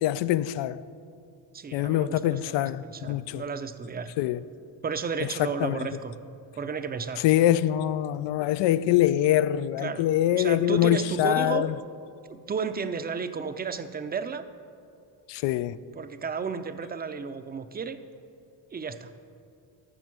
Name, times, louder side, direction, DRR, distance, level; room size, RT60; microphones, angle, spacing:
voice 1, 0.0-0.8 1.7-3.4 4.2-4.4 5.6-5.8 7.2-11.7 15.3-15.8, left 13 dB, 70° left, 0.5 m, -24 dB
voice 2, 1.5-4.1 4.8-6.2 6.6-7.2 9.8-10.1 10.3-11.7 12.3-14.4 15.9-18.0 18.7-19.1, right 5 dB, 20° right, 0.5 m, -33 dB
13.5 x 6.7 x 6.1 m
cardioid pair, 100°, 45 cm